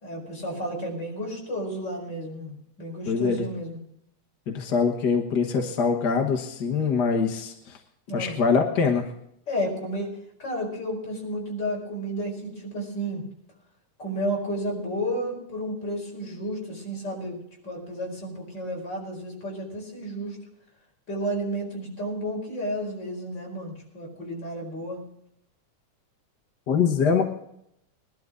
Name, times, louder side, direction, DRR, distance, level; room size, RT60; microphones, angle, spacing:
voice 1, 0.0-3.8 8.1-8.4 9.5-10.1 10.4-13.2 14.0-20.4 21.1-25.0, equal, 35° left, -1 dB, 5.4 m, -32 dB
voice 2, 3.1-3.5 4.5-7.8 8.1-9.1 26.7-27.2, left 5 dB, 55° left, 4 dB, 1.2 m, -23 dB
20.5 x 12.0 x 3.8 m, 0.74 s
omnidirectional pair, 3.5 m